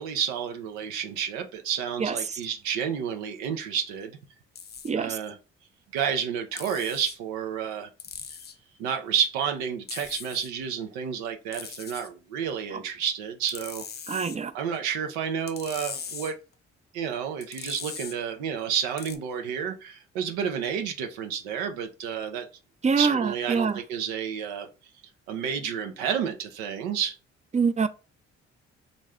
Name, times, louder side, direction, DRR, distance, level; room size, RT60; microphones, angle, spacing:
voice 1, 0.0-4.1 5.0-5.4 5.9-7.9 8.8-13.8 14.5-16.4 16.9-22.5 23.0-24.7 25.3-27.1, right 8 dB, 85° right, 0.6 m, -30 dB
voice 2, 2.0-2.4 4.8-5.2 14.1-14.5 22.8-23.8 27.5-27.9, right 5 dB, 25° right, 0.4 m, -25 dB
sound 1, 4.6-4.9 6.6-7.2 8.0-8.6 9.9-10.5 11.5-12.1 13.5-14.4 15.5-16.3 17.4-18.2 19.0-19.2, left 7 dB, 35° left, 0.5 m, -40 dB
3.1 x 2.6 x 3.5 m
hypercardioid pair, 55°, 30 cm